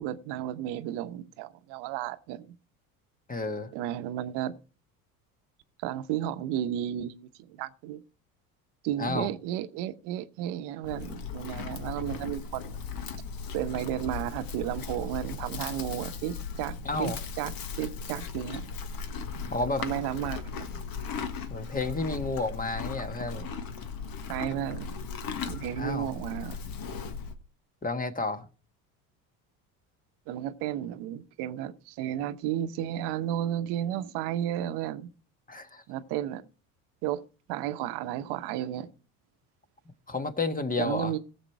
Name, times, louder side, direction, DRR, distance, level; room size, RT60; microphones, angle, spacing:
voice 1, 0.0-2.6 3.7-4.6 5.8-8.0 8.8-12.8 13.5-17.5 17.8-18.7 19.8-20.8 24.3-25.0 25.5-26.6 30.3-35.1 35.9-36.4 37.0-38.9 40.8-41.2, right 11 dB, 70° right, 1.0 m, -33 dB
voice 2, 3.3-3.7 9.0-9.3 16.8-17.2 19.5-19.8 21.5-23.5 25.8-26.1 27.8-28.5 35.5-35.8 40.1-41.1, left 3 dB, 20° left, 1.5 m, -31 dB
Livestock farm animals working animals, 10.8-27.4, left 5 dB, 55° left, 1.6 m, -37 dB
16.5 x 7.3 x 4.7 m
supercardioid pair, 80°, 42 cm